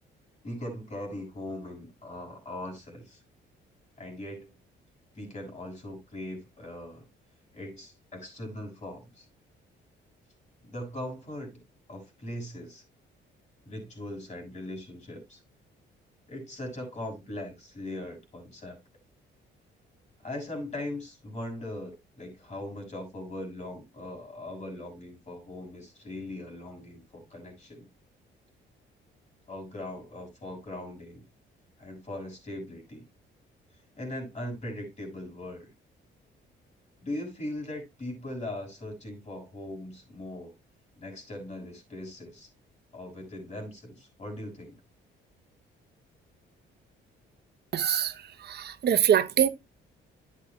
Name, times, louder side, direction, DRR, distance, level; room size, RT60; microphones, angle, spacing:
voice 1, 0.4-3.2 4.0-4.5 5.1-7.0 7.5-9.3 10.6-11.6 11.9-12.8 13.6-15.4 16.3-18.8 20.2-27.9 29.5-31.2 31.8-33.0 34.0-35.7 37.0-40.5 41.0-42.5 42.9-44.7, left 1 dB, 35° left, 6.3 m, -40 dB
voice 2, 47.7-48.1 48.5-49.5, right 9 dB, 55° right, 0.9 m, -23 dB
11.5 x 8.5 x 2.3 m
cardioid pair, 90°, 20 cm